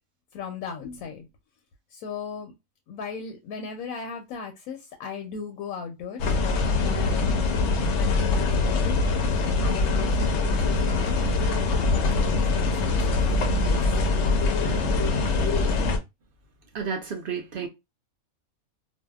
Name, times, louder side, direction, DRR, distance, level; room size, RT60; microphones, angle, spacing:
voice 1, 0.3-1.3 1.9-2.5 2.9-7.4 7.9-9.0 9.6-13.2 13.5-13.9, left 6 dB, 85° left, 1.0 m, -37 dB
sound 1, 6.2-16.0, left 3 dB, 65° left, 0.8 m, -23 dB
voice 2, 16.7-17.7, right 6 dB, 65° right, 0.5 m, -31 dB
2.7 x 2.2 x 2.2 m
omnidirectional pair, 1.5 m